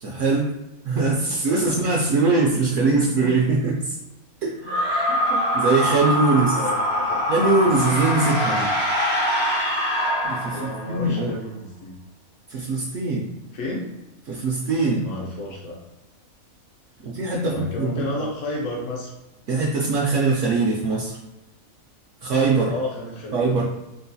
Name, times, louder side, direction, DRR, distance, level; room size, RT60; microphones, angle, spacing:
voice 1, 0.0-0.5 0.8-3.9 4.4-4.6 5.5-6.6 7.3-8.7 10.2-11.3 12.5-13.3 14.3-15.1 17.0-18.1 19.5-21.2 22.2-22.8 23.3-23.6, right 3 dB, 70° right, -2 dB, 0.8 m, -22 dB
voice 2, 2.7-3.3 4.6-5.4 6.0-6.1 6.4-7.3 10.5-12.0 13.5-13.9 15.0-15.8 17.4-19.1 22.6-23.6, left 1 dB, 65° left, -2 dB, 1.0 m, -32 dB
sound 1, 4.6-11.1, equal, 40° left, 0.4 m, -23 dB
3.7 x 2.3 x 2.7 m, 0.97 s
omnidirectional pair, 1.5 m